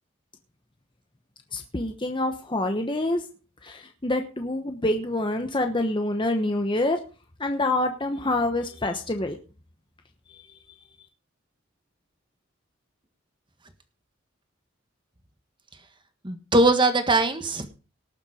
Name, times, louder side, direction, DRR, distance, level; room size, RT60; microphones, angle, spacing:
voice 1, 1.5-3.3 3.6-7.0 7.4-9.4 10.3-10.4, left 2 dB, 20° left, 5 dB, 1.0 m, -26 dB
voice 2, 16.2-17.7, right 2 dB, 20° right, 8 dB, 1.5 m, -21 dB
18.5 x 7.2 x 4.9 m, 0.35 s
head